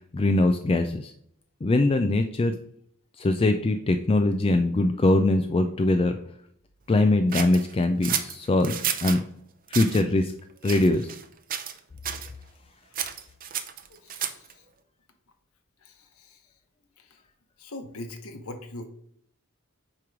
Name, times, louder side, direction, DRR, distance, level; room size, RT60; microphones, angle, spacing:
voice 1, 0.1-1.1 1.6-2.5 3.2-6.2 6.9-8.7 9.0-9.2 9.7-10.3 10.6-11.1, left 2 dB, 25° left, 7 dB, 0.4 m, -22 dB
sound 1, 7.3-9.2 9.7-10.0 10.6-11.2 11.5-11.8 12.0-12.3 12.9-14.5, right 9 dB, 40° right, 0.6 m, -31 dB
voice 2, 13.9-14.4 15.8-16.4 17.6-18.9, left 1 dB, 85° left, 6 dB, 1.0 m, -41 dB
8.6 x 3.1 x 4.8 m, 0.68 s
head